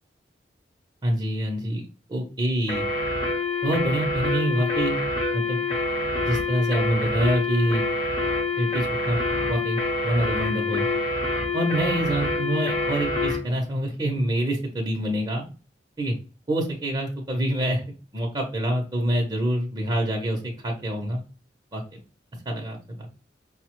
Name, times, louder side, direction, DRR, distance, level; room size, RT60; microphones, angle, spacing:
voice 1, 1.0-2.9 3.6-5.0 5.3-5.6 6.3-7.8 8.6-9.2 9.5-10.9 11.5-15.4 16.0-16.1 16.5-17.8 18.1-21.2 21.7-22.0 22.3-23.1, right 1 dB, 25° right, -1 dB, 0.6 m, -26 dB
sound 1, 2.7-13.4, left 2 dB, 25° left, 0.9 m, -26 dB
5.2 x 2.1 x 2.9 m, 0.35 s
head